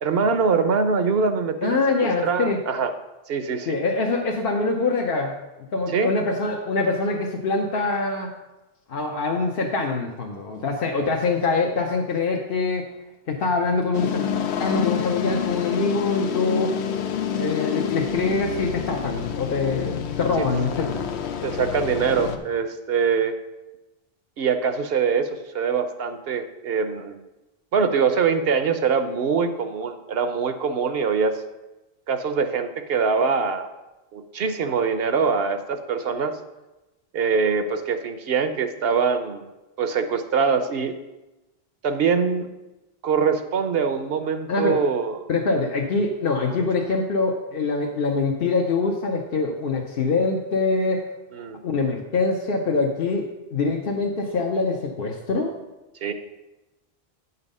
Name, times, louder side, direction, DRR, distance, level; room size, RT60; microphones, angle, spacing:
voice 1, 0.0-1.8 2.2-2.9 3.3-3.8 5.9-6.1 20.4-20.5 21.4-23.4 24.4-27.2 27.7-31.4 32.1-33.7 34.1-36.4 37.1-39.5 39.8-41.0 41.8-42.5 43.0-45.2 51.3-51.6 56.0-56.1, right 5 dB, 70° right, 9 dB, 0.9 m, -23 dB
voice 2, 1.6-2.6 3.7-5.3 5.7-8.3 8.9-12.9 13.3-14.3 14.6-16.7 17.3-21.0 44.5-44.8 45.3-51.0 51.6-55.5, left 3 dB, 65° left, 0 dB, 1.0 m, -24 dB
sound 1, 13.9-22.4, left 8 dB, 90° left, 0.9 m, -28 dB
8.9 x 5.5 x 5.3 m, 1.0 s
omnidirectional pair, 1.1 m